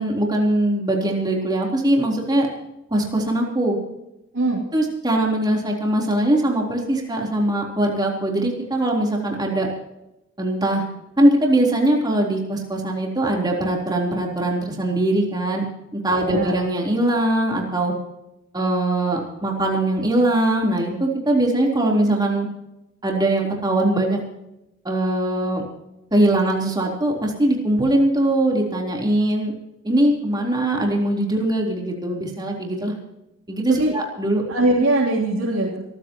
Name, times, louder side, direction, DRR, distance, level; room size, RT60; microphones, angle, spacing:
voice 1, 0.0-2.5 2.9-3.8 4.7-9.7 10.4-10.8 11.2-15.6 15.9-17.9 18.5-22.5 23.0-24.2 24.8-25.6 26.1-29.5 29.8-32.9 33.5-34.4, right 1 dB, 20° right, -1 dB, 3.8 m, -21 dB
voice 2, 16.1-16.6 33.7-33.9 34.5-35.8, right 2 dB, 85° right, -5 dB, 3.5 m, -21 dB
25.5 x 14.5 x 3.1 m, 0.91 s
head